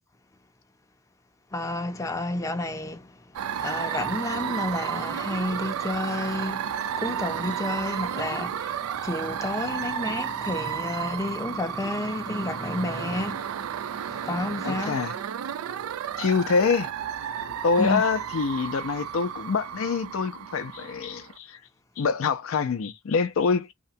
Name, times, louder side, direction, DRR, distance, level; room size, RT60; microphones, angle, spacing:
voice 1, 1.5-3.2 3.6-13.5 14.1-15.0 17.8-18.0, left 2 dB, 15° left, 0.5 m, -31 dB
sound 1, 3.3-21.3, right 9 dB, 80° right, 0.4 m, -32 dB
voice 2, 14.6-15.1 16.2-16.9 17.6-21.6 22.0-23.7, left 5 dB, 70° left, 0.4 m, -25 dB
2.8 x 2.2 x 2.6 m
head